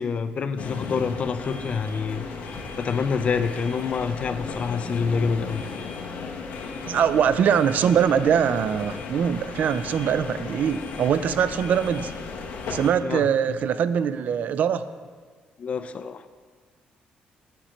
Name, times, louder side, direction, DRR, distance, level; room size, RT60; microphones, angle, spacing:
voice 1, 0.0-2.2 2.8-5.6 13.0-13.3 15.6-16.2, left 5 dB, 45° left, 11 dB, 0.3 m, -27 dB
sound 1, 0.6-12.9, left 4 dB, 90° left, 0.8 m, -35 dB
voice 2, 6.9-12.1 12.7-14.8, right 8 dB, 65° right, 13 dB, 0.3 m, -22 dB
7.5 x 5.1 x 4.3 m, 1.5 s
cardioid pair, 105°, 3 cm